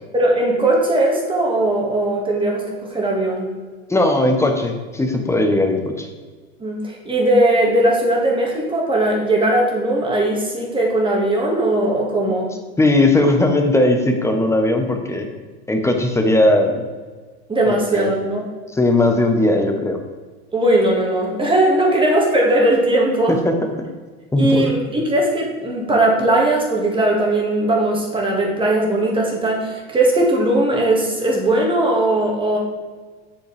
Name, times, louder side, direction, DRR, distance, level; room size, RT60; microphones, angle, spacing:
voice 1, 0.1-3.5 6.6-12.5 17.5-18.4 20.5-23.4 24.4-32.6, right 1 dB, 15° right, -2 dB, 1.9 m, -18 dB
voice 2, 3.9-6.1 12.8-15.3 15.7-16.9 17.9-18.1 18.7-20.0 23.3-23.9 24.3-24.7, left 2 dB, 10° left, 4 dB, 1.0 m, -18 dB
7.7 x 6.4 x 3.4 m, 1.4 s
supercardioid pair, 110°, 33 cm